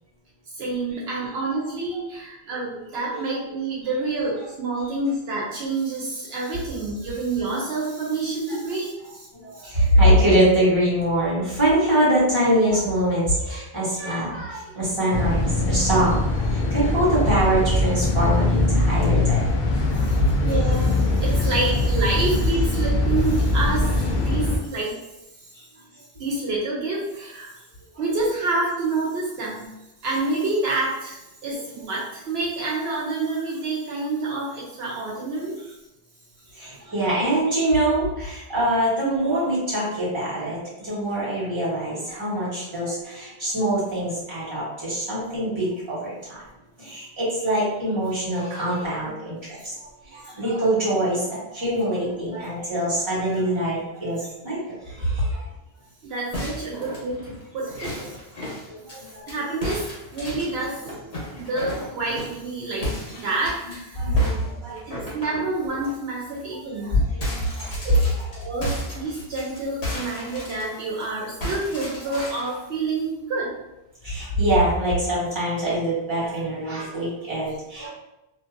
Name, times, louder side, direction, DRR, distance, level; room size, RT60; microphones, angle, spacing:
voice 1, 0.5-9.3 9.5-9.7 19.9-25.0 25.4-25.5 26.2-27.5 28.0-29.7 30.0-35.6 36.7-36.8 49.5-49.6 56.0-58.2 59.3-59.9 60.1-64.3 64.9-66.9 67.8-68.1 68.3-73.6, right 3 dB, 75° right, -4 dB, 0.9 m, -28 dB
voice 2, 9.3-19.4 32.6-32.7 36.5-46.4 46.8-49.4 49.6-54.6 54.8-55.4 58.4-59.2 64.0-65.1 66.8-67.7 74.0-77.9, right 1 dB, 25° right, -8 dB, 1.2 m, -23 dB
sound 1, 15.1-24.6, left 2 dB, 55° left, 0.6 m, -22 dB
sound 2, 56.3-59.4 59.6-62.4 62.8-63.8 64.2-65.9 66.3-66.5 66.8-71.0 71.4-72.6, left 1 dB, 85° left, 1.3 m, -34 dB
2.8 x 2.6 x 2.5 m, 0.95 s
omnidirectional pair, 1.1 m